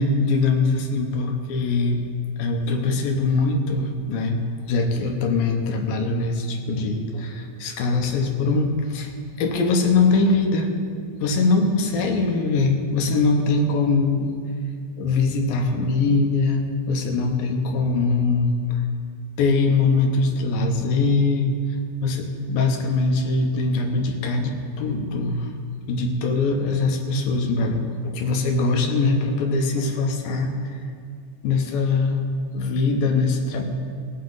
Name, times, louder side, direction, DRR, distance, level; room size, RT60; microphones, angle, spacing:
voice 1, 0.0-2.0 2.4-9.1 9.4-10.7 11.2-14.3 15.0-18.8 19.4-21.5 22.0-25.5 25.9-30.8 31.4-32.3 32.5-33.6, left 3 dB, 70° left, 3 dB, 2.5 m, -22 dB
18.5 x 8.6 x 3.9 m, 2.2 s
omnidirectional pair, 4.6 m